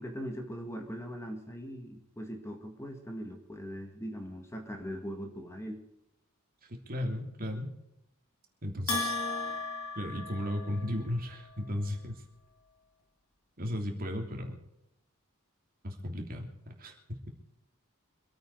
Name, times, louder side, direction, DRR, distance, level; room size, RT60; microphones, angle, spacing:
voice 1, 0.0-5.8, equal, 10° left, 3 dB, 1.8 m, -40 dB
voice 2, 6.7-7.7 8.6-9.5 9.9-12.2 13.6-14.6 15.8-16.5 16.8-16.9, left 1 dB, 40° right, 2 dB, 3.1 m, -35 dB
Bell, 8.9-11.0, left 3 dB, 75° left, 3.1 m, -35 dB
26.0 x 8.9 x 4.8 m, 0.85 s
head